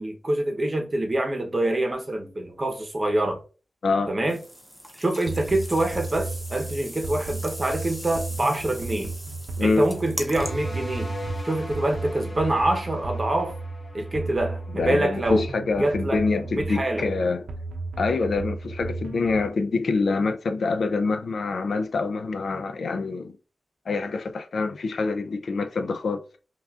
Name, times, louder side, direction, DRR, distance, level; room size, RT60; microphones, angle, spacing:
voice 1, 0.0-3.4 4.1-4.4 5.0-9.2 9.6-11.1 11.4-13.6 13.9-15.5 15.8-16.2 16.5-17.1, right 1 dB, 30° right, 0.8 m, -25 dB
sound 1, 4.3-10.5, equal, ahead, 0.7 m, -40 dB
sound 2, 5.3-19.5, right 3 dB, 70° right, 0.7 m, -34 dB
sound 3, 10.3-15.6, equal, 25° left, 0.9 m, -38 dB
voice 2, 14.7-17.4 18.0-23.3 23.9-26.2, left 4 dB, 70° left, 0.4 m, -25 dB
5.7 x 2.4 x 2.4 m
wide cardioid pair, 120°, 0 cm